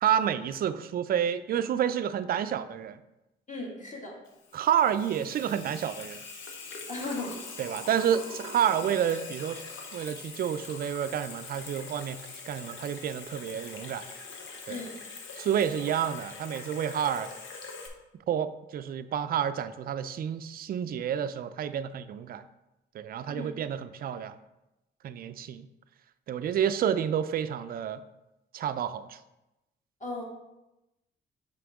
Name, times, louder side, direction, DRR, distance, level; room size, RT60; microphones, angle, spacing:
voice 1, 0.0-3.0 4.5-6.2 7.6-9.6 9.9-12.2 12.5-14.1 14.7-14.8 15.4-17.3 18.3-22.4 22.9-24.4 25.0-25.7 26.3-28.0 28.5-29.2, right 9 dB, 50° right, 12 dB, 0.4 m, -29 dB
voice 2, 3.5-4.2 6.9-7.4 14.7-15.0 23.3-23.6 30.0-30.2, left 2 dB, 40° left, -2 dB, 1.8 m, -37 dB
Water tap faucet / Sink (filling or washing), 4.3-17.9, left 4 dB, 80° left, 0.9 m, -43 dB
6.1 x 4.7 x 3.5 m, 0.95 s
cardioid pair, 90°, 20 cm